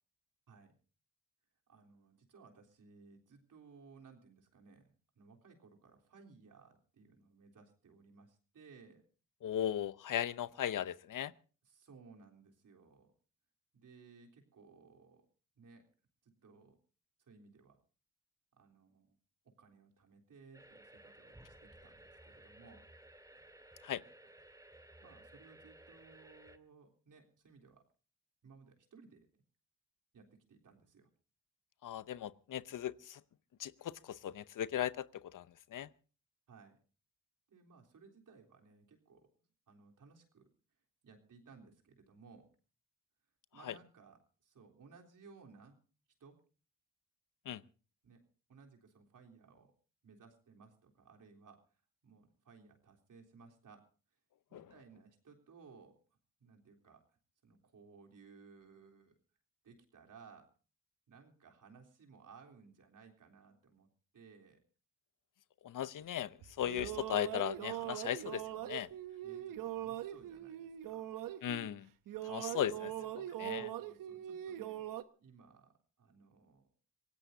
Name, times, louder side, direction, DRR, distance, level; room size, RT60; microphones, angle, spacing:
voice 1, 1.7-4.9 5.2-9.0 11.7-13.1 13.7-15.2 15.6-15.8 16.2-16.8 17.2-17.8 18.6-19.2 19.4-22.8 25.0-27.8 28.4-29.4 30.1-31.1 36.5-36.8 37.5-39.3 39.7-40.5 41.0-42.5 43.5-45.8 46.2-46.4 48.0-49.7 50.0-51.6 52.0-53.8 54.5-55.9 56.4-57.0 57.4-59.2 59.6-60.5 61.1-63.9 64.1-64.6 69.2-71.2 72.7-74.8 75.2-75.7 76.0-76.7, right 5 dB, 70° right, 3.7 m, -60 dB
voice 2, 9.4-11.3 23.8-24.0 31.8-33.2 33.6-35.9 43.6-43.7 47.5-47.6 54.5-54.7 65.6-68.9 71.4-71.9 72.2-72.9 73.4-73.7, left 10 dB, 75° left, 0.8 m, -37 dB
sound 1, 20.5-26.6, right 1 dB, 10° right, 1.9 m, -58 dB
sound 2, 66.4-71.8 72.1-75.0, right 12 dB, 90° right, 0.9 m, -42 dB
26.5 x 17.0 x 2.7 m
cardioid pair, 50°, 32 cm